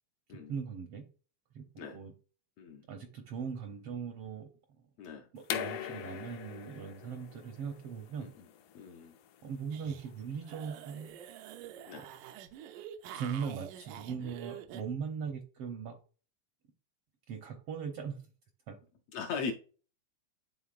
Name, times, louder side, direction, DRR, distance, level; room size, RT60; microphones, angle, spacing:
voice 1, 0.5-1.0 1.5-2.1 2.9-4.5 5.3-8.3 9.4-11.1 13.1-16.0 17.3-18.2 18.7-18.8, right 6 dB, 70° right, 1.4 m, -39 dB
sound 1, 5.4-11.0, left 10 dB, 90° left, 2.3 m, -42 dB
voice 2, 8.7-9.1 11.9-12.1 19.1-19.5, left 5 dB, 75° left, 1.6 m, -39 dB
sound 2, 9.7-10.1 10.4-14.8, right 10 dB, 90° right, 2.2 m, -47 dB
11.0 x 3.9 x 2.4 m
omnidirectional pair, 3.5 m